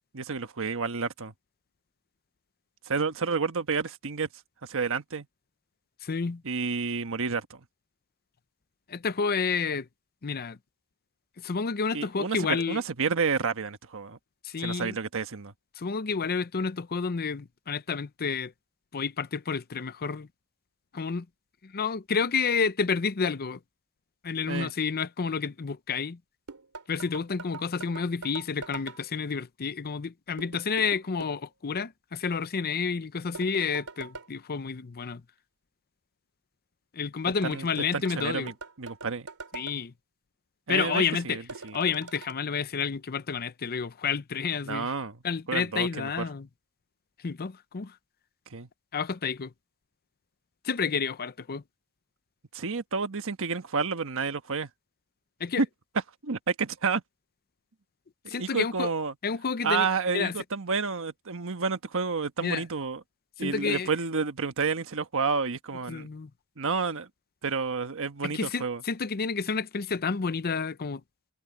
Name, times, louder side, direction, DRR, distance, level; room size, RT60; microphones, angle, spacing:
voice 1, 0.1-1.3 2.8-4.3 4.6-5.3 6.4-7.6 11.9-14.2 14.6-15.5 24.5-24.7 37.2-37.7 37.9-39.3 40.7-41.8 44.6-45.2 45.5-46.3 48.5-48.7 52.5-54.7 55.6-55.7 56.2-57.0 58.2-59.1 59.6-63.0 63.4-66.1 66.6-67.1 67.4-68.8, right 5 dB, 65° right, 1.3 m, -30 dB
voice 2, 6.0-6.4 8.9-9.9 10.2-10.6 11.4-12.8 14.4-15.0 15.8-18.5 18.9-20.3 20.9-21.3 21.6-23.6 24.2-26.2 26.9-35.2 36.9-38.5 39.5-39.9 40.7-41.4 41.7-44.9 45.2-46.5 47.2-47.9 48.9-49.5 50.6-51.6 55.4-55.6 58.3-58.9 59.2-59.9 60.1-60.3 62.4-62.6 63.4-63.9 65.9-66.3 68.2-71.0, left 5 dB, 45° left, 0.6 m, -30 dB
sound 1, 26.5-29.0 30.4-31.4 33.3-34.3 37.5-39.8 41.5-42.3, right 4 dB, 90° right, 2.9 m, -43 dB
head